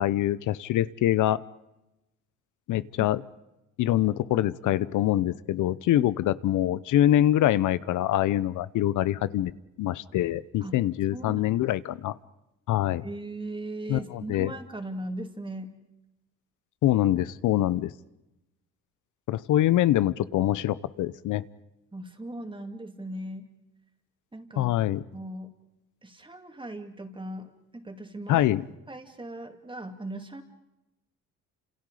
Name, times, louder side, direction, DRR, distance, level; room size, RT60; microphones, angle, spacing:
voice 1, 0.0-1.4 2.7-3.2 3.8-9.5 9.8-12.1 12.7-13.0 13.9-14.5 16.8-17.9 19.3-21.4 24.6-25.0 28.3-28.6, left 13 dB, 80° left, 17 dB, 0.8 m, -24 dB
voice 2, 11.1-11.5 13.0-15.8 21.9-23.5 24.3-24.7 25.1-25.5 26.0-28.5 28.9-30.4, right 1 dB, 15° right, 5 dB, 2.8 m, -38 dB
29.0 x 27.5 x 5.0 m, 0.94 s
cardioid pair, 90°, 30 cm